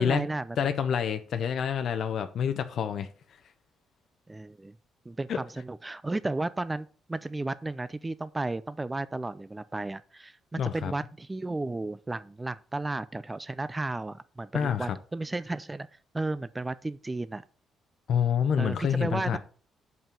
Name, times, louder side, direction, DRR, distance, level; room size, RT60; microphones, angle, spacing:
voice 1, 0.0-0.6 4.3-4.7 5.1-17.4 18.6-19.4, right 2 dB, 15° right, 0.4 m, -33 dB
voice 2, 0.6-3.1 5.3-5.4 10.6-10.9 14.5-15.0 18.1-19.4, left 8 dB, 65° left, 0.7 m, -27 dB
5.7 x 5.4 x 6.8 m
cardioid pair, 90°, 0 cm